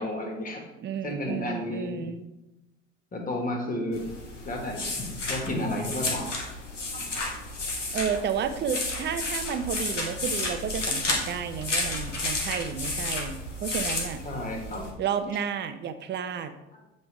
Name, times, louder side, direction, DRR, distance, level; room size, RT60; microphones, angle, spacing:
voice 1, 0.0-0.6 1.0-2.0 3.1-4.0 4.4-4.9 5.3-6.3 6.9-7.3 14.2-14.9, left 1 dB, 25° left, 2 dB, 1.8 m, -32 dB
voice 2, 0.8-2.2 7.9-14.2 15.0-16.5, right 7 dB, 30° right, 10 dB, 0.7 m, -31 dB
sound 1, 3.9-14.9, left 2 dB, 90° left, 1.3 m, -32 dB
7.8 x 5.3 x 3.4 m, 0.96 s
figure-of-eight pair, 70°, 36 cm